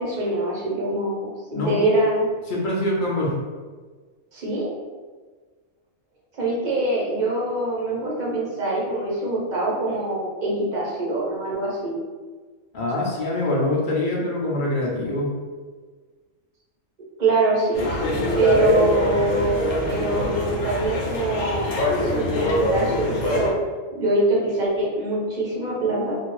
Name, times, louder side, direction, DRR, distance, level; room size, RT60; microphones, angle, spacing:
voice 1, 0.0-2.3 4.3-4.7 6.3-12.0 17.2-17.8 18.4-23.5 24.0-26.2, right 2 dB, 40° right, -5 dB, 0.9 m, -24 dB
voice 2, 2.5-3.4 12.7-15.3, left 1 dB, 50° left, -3 dB, 0.6 m, -24 dB
sound 1, 17.7-23.5, left 1 dB, 85° left, 1.0 m, -24 dB
2.6 x 2.6 x 3.0 m, 1.4 s
omnidirectional pair, 1.3 m